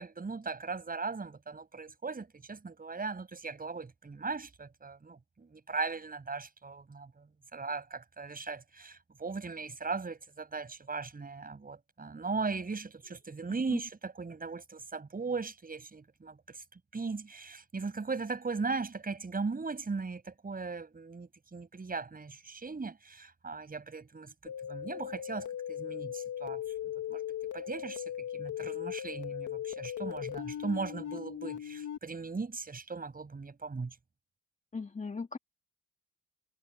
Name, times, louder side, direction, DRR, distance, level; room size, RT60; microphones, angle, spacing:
voice 1, 0.0-16.6 16.9-27.2 27.5-34.0, right 4 dB, 30° right, 7.4 m, -38 dB
sound 1, 24.5-32.0, left 10 dB, 80° left, 2.4 m, -38 dB
voice 2, 34.7-35.4, left 4 dB, 25° left, 2.2 m, -37 dB
cardioid pair, 90°, 30 cm